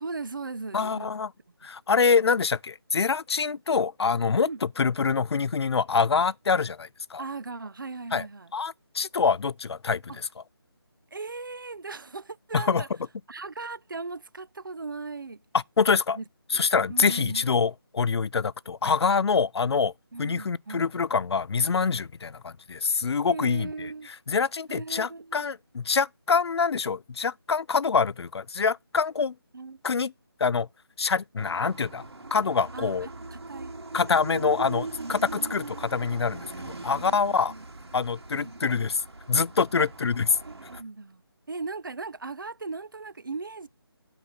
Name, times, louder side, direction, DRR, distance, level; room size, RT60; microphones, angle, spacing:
voice 1, 0.0-1.1 4.5-4.6 7.2-8.5 11.1-12.9 13.3-15.4 16.1-16.2 16.5-16.6 16.9-17.5 20.1-20.9 23.3-24.1 24.7-25.5 29.5-29.8 32.7-33.7 34.3-34.5 34.9-35.6 36.6-37.6 38.3-38.8 39.8-39.9 40.5-41.2 41.5-43.7, right 3 dB, 55° right, 0.4 m, -38 dB
voice 2, 0.7-1.3 1.6-7.2 8.1-8.3 8.5-10.3 12.5-12.8 15.5-16.2 16.5-19.9 20.2-23.9 24.3-29.3 29.8-30.1 30.4-30.7 31.0-32.0 32.3-33.1 33.9-37.5 37.9-39.0 39.3-40.3, left 5 dB, 85° left, 0.4 m, -25 dB
sound 1, 31.4-40.8, right 3 dB, 80° right, 2.3 m, -41 dB
8.1 x 4.0 x 6.4 m
figure-of-eight pair, 180°, 13 cm